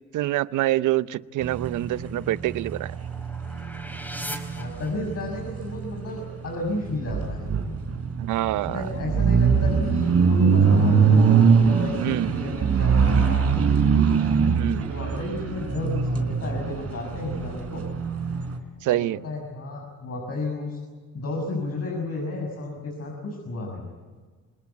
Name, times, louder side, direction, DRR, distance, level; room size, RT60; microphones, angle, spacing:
voice 1, 0.1-2.9 8.2-8.8 12.0-12.3 14.5-14.8 18.8-19.2, right 15 dB, 80° right, 0.7 m, -26 dB
sound 1, 1.4-18.6, right 6 dB, 55° right, 3.9 m, -23 dB
sound 2, 2.0-5.4, equal, 5° left, 4.4 m, -41 dB
voice 2, 4.6-7.5 8.5-11.3 11.6-13.6 14.8-17.8 18.9-20.8 21.1-23.9, left 2 dB, 55° left, 6.7 m, -32 dB
26.0 x 20.0 x 8.3 m
cardioid pair, 90°, 30 cm